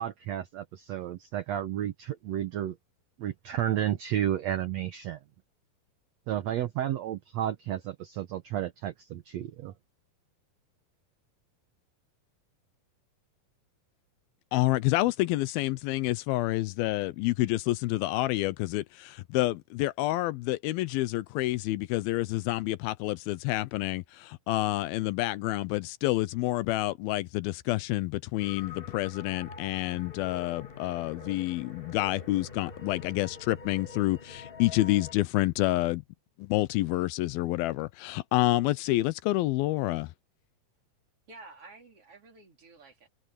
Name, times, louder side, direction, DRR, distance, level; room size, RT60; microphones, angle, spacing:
voice 1, 0.0-2.7 3.2-5.2 6.3-9.7, right 11 dB, 80° right, 1.5 m, -32 dB
voice 2, 14.5-36.0 36.4-40.1, left 18 dB, 85° left, 2.5 m, -28 dB
sound 1, 28.4-35.1, left 4 dB, 45° left, 0.7 m, -45 dB
voice 3, 41.3-43.1, right 3 dB, 40° right, 4.2 m, -51 dB
omnidirectional pair, 4.4 m